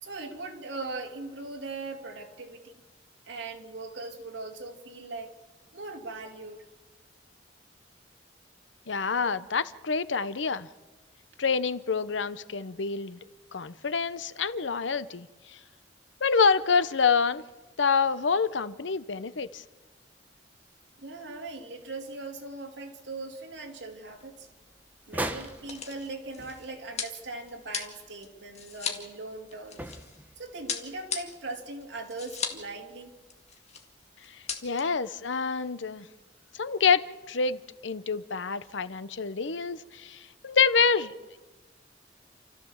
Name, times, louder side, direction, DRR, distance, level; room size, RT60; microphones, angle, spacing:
voice 1, 0.0-2.8 3.2-5.3 5.7-6.6 21.0-24.5 25.1-29.8 30.4-33.1, right 3 dB, 80° right, 2 dB, 2.8 m, -40 dB
voice 2, 8.9-10.7 11.4-13.2 13.5-15.6 16.2-17.4 17.8-19.6 34.3-36.1 36.5-41.1, left 5 dB, 90° left, 14 dB, 0.8 m, -27 dB
sound 1, 23.8-23.9 24.2-24.3 25.1-30.2 30.7-32.7 33.0-33.1 33.3-33.9 34.2-34.8, left 6 dB, 35° left, 1.9 m, -37 dB
sound 2, 25.0-27.2 27.5-27.6 29.7-30.8, right 1 dB, 10° right, 1.2 m, -38 dB
28.5 x 14.0 x 7.2 m, 1.2 s
head